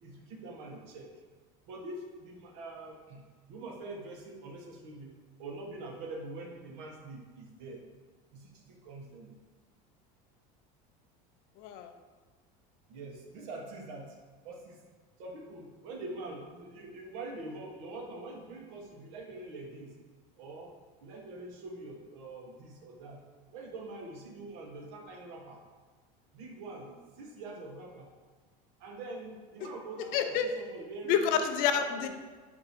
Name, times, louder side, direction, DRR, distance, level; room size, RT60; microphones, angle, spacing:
voice 1, 0.0-1.1 1.7-7.8 8.3-9.3 12.9-14.2 14.4-14.8 15.2-20.0 20.4-20.7 21.0-23.2 23.5-25.6 26.3-28.1 28.8-31.3 31.7-32.1, right 2 dB, 65° right, 1 dB, 0.9 m, -44 dB
voice 2, 11.6-11.9 30.1-30.5 31.1-32.1, left 8 dB, 50° left, 7 dB, 0.4 m, -28 dB
4.4 x 2.7 x 4.0 m, 1.4 s
cardioid pair, 155°, 18 cm